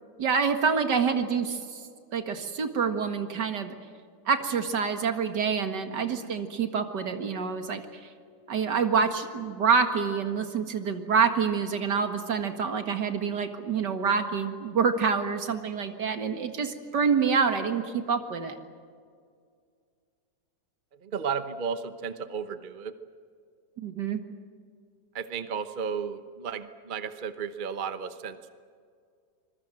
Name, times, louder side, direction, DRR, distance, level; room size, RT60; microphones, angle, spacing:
voice 1, 0.2-1.8 2.1-3.7 4.3-7.8 8.5-18.6 23.8-24.2, right 6 dB, 70° right, 7 dB, 2.4 m, -27 dB
voice 2, 21.0-22.9 25.1-28.5, right 6 dB, 35° right, 10 dB, 0.9 m, -33 dB
26.0 x 22.0 x 7.7 m, 2.2 s
omnidirectional pair, 1.9 m